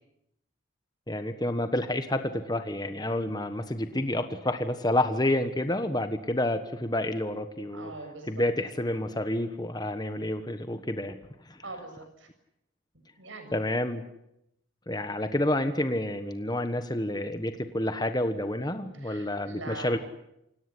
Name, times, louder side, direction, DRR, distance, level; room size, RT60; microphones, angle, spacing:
voice 1, 1.1-7.9 8.3-11.2 11.5-11.6 13.5-14.1 14.9-20.0, left 1 dB, 20° left, 9 dB, 1.3 m, -29 dB
voice 2, 7.7-8.5 11.6-12.3 13.2-13.6 18.9-20.0, right 2 dB, 75° right, 6 dB, 7.1 m, -42 dB
28.5 x 18.0 x 10.0 m, 0.81 s
head